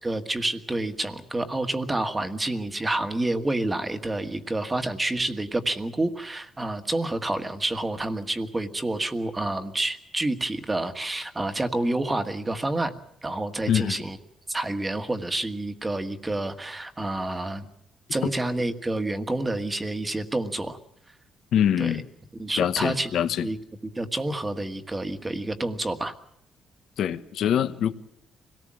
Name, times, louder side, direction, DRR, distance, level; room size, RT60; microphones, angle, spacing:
voice 1, 0.0-14.2 14.5-17.7 18.1-20.8 21.8-21.9 22.4-23.1 23.4-23.6 23.8-26.1, right 2 dB, 15° right, 1.6 m, -28 dB
voice 2, 13.7-14.0 18.2-18.3 21.5-22.0 22.6-23.5 27.0-27.9, left 9 dB, 70° left, 1.2 m, -24 dB
26.0 x 18.0 x 7.6 m
cardioid pair, 140°, 0 cm